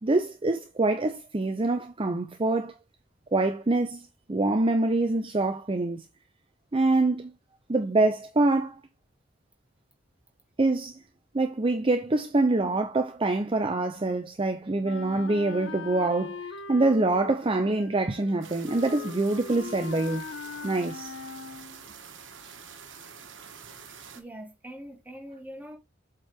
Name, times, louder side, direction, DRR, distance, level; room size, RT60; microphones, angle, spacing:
voice 1, 0.0-2.7 3.3-6.0 6.7-7.3 7.7-8.8 10.6-11.0 11.3-20.2 20.6-21.1, right 2 dB, 30° right, 0.6 m, -25 dB
Wind instrument woodwind instrument, 14.8-21.8, left 4 dB, 75° left, 0.7 m, -40 dB
sound 1, 18.4-24.2, right 6 dB, 70° right, 1.4 m, -47 dB
voice 2, 23.8-25.8, equal, 10° right, 2.4 m, -43 dB
7.9 x 4.5 x 3.6 m
head